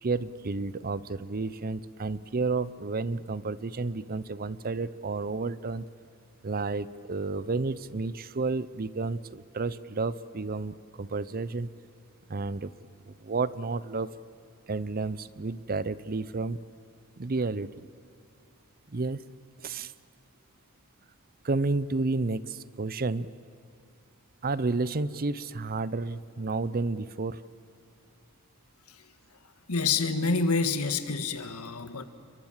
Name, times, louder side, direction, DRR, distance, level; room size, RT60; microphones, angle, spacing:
voice 1, 0.0-5.9 6.4-11.7 12.3-12.7 13.1-14.1 14.7-16.6 17.2-17.7 18.9-19.2 19.6-19.9 21.4-23.3 24.4-27.4, right 3 dB, 40° right, 18 dB, 0.7 m, -31 dB
voice 2, 29.7-32.0, left 4 dB, 80° left, 10 dB, 1.7 m, -28 dB
30.0 x 22.5 x 7.5 m, 2.6 s
head